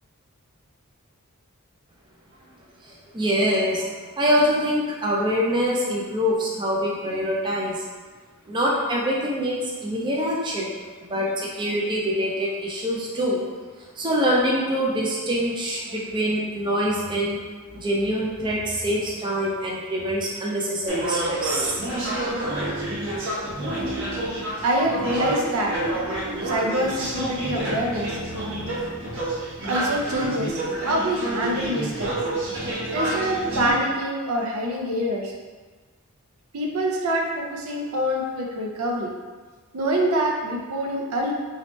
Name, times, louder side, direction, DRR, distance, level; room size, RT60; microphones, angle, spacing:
voice 1, 2.9-3.9 4.2-7.8 8.5-10.7 11.1-13.4 14.0-17.4 17.7-21.9, equal, 20° right, -4 dB, 0.4 m, -24 dB
sound 1, 20.9-33.7, right 1 dB, 60° right, 0.9 m, -28 dB
voice 2, 24.6-25.8 26.4-28.2 29.6-32.1 32.9-35.3 36.5-39.1 39.7-41.3, right 1 dB, 80° right, -1 dB, 0.6 m, -25 dB
3.1 x 2.8 x 3.1 m, 1.4 s
head